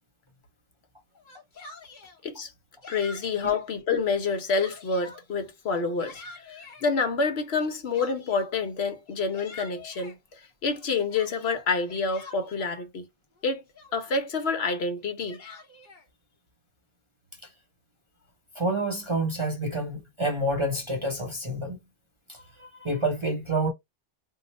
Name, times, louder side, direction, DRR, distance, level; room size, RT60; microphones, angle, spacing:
Yell, 1.1-2.2 2.8-3.6 4.1-5.2 5.7-6.8 7.6-8.5 9.1-10.2 10.7-12.8 13.4-13.5 13.7-14.2 15.0-16.0, left 3 dB, 45° left, 1.1 m, -47 dB
voice 1, 2.9-13.1 13.4-13.6 13.9-15.4, left 4 dB, 65° left, 1.1 m, -28 dB
voice 2, 18.6-21.8 22.3-23.7, right 1 dB, 35° right, 0.6 m, -28 dB
2.8 x 2.1 x 4.0 m
omnidirectional pair, 1.1 m